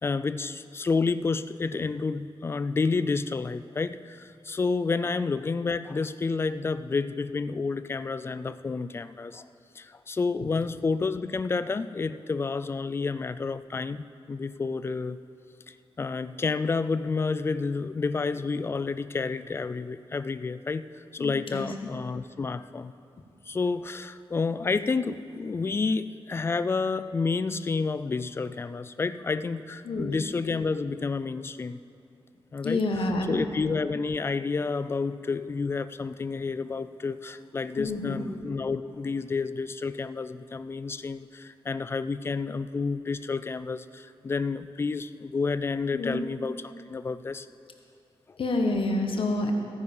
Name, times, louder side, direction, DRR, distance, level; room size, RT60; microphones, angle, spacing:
voice 1, 0.0-9.5 9.8-15.2 15.7-20.8 21.1-22.9 23.5-31.8 32.5-32.8 33.3-47.5, left 4 dB, 25° left, 13 dB, 0.3 m, -30 dB
voice 2, 21.2-21.9 29.8-30.2 32.6-33.4 37.8-38.2 45.9-46.2 48.4-49.5, left 2 dB, 60° left, 3 dB, 1.3 m, -28 dB
15.0 x 9.6 x 5.5 m, 2.6 s
wide cardioid pair, 180°, 10 cm